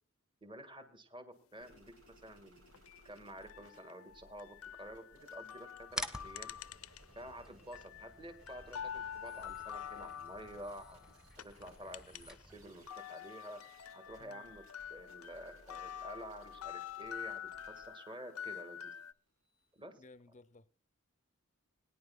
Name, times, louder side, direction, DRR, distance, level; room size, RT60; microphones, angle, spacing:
voice 1, 0.4-2.7 3.0-6.5 7.1-11.0 11.4-13.6 13.9-17.4 17.7-18.9 19.7-20.0, right 1 dB, 25° right, 1.7 m, -50 dB
sound 1, 1.6-7.9 8.3-19.8, right 1 dB, 75° right, 5.6 m, -64 dB
sound 2, 2.7-7.3 7.6-12.5 12.7-19.1, left 9 dB, 85° left, 0.6 m, -47 dB
sound 3, 5.9-12.9, left 1 dB, 5° right, 1.4 m, -49 dB
voice 2, 20.0-20.7, left 2 dB, 35° left, 0.7 m, -58 dB
22.0 x 10.0 x 2.2 m
head